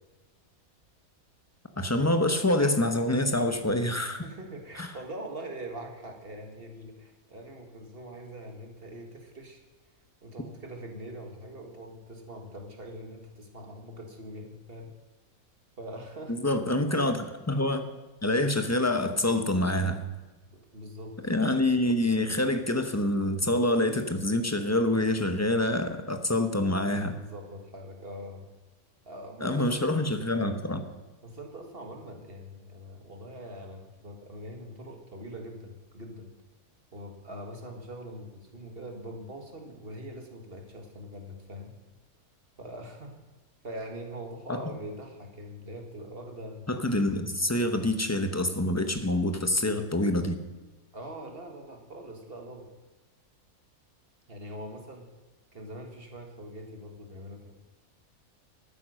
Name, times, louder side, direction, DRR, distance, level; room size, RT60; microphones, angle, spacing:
voice 1, 1.8-4.2 4.8-4.9 16.3-17.8 18.2-20.0 21.2-27.2 29.4-30.8 44.5-44.6 46.7-50.4, left 1 dB, 15° left, 7 dB, 0.8 m, -26 dB
voice 2, 4.1-9.6 10.2-14.9 15.8-16.4 16.9-17.1 20.5-21.2 26.9-28.5 29.1-29.8 31.2-36.3 36.9-41.8 42.6-43.2 43.6-46.7 50.9-52.7 54.3-55.1 55.5-57.5, right 1 dB, 40° right, 3 dB, 2.0 m, -43 dB
12.5 x 9.4 x 6.5 m, 1.2 s
omnidirectional pair, 1.5 m